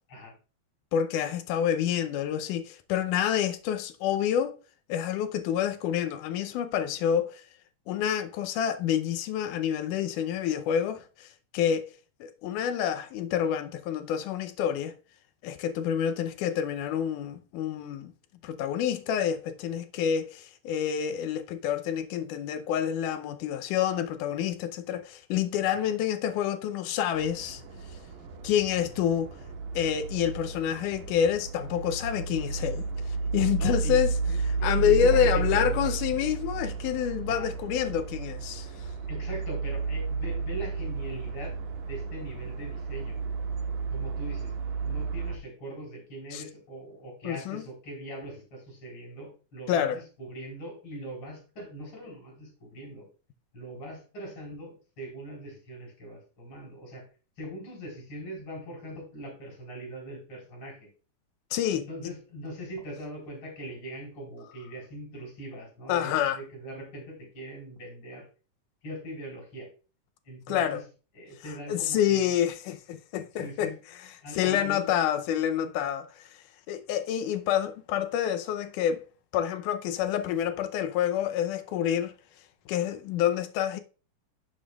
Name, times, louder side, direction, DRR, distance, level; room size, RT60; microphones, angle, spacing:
voice 1, 0.9-4.5 4.9-7.4 7.9-11.3 11.5-11.9 12.2-14.9 15.4-18.1 18.4-27.6 28.4-29.3 29.8-32.8 33.3-34.1 34.6-38.7 46.3-46.4 47.2-47.7 49.7-50.0 61.5-61.9 65.9-66.4 70.5-70.8 71.7-73.7 74.3-76.3 76.7-79.0 79.3-82.1 82.7-83.8, left 9 dB, 80° left, 2.2 m, -28 dB
sound 1, 27.1-45.4, right 4 dB, 75° right, 2.7 m, -32 dB
voice 2, 33.6-34.0 34.3-35.9 37.3-37.5 39.1-41.5 41.9-43.2 43.9-44.5 44.8-53.0 53.5-57.0 57.4-60.9 61.7-68.2 68.8-69.7 70.2-70.8 71.1-72.3 73.3-73.8 74.2-74.9, right 1 dB, 40° left, 4.7 m, -41 dB
11.0 x 7.0 x 2.3 m
omnidirectional pair, 3.6 m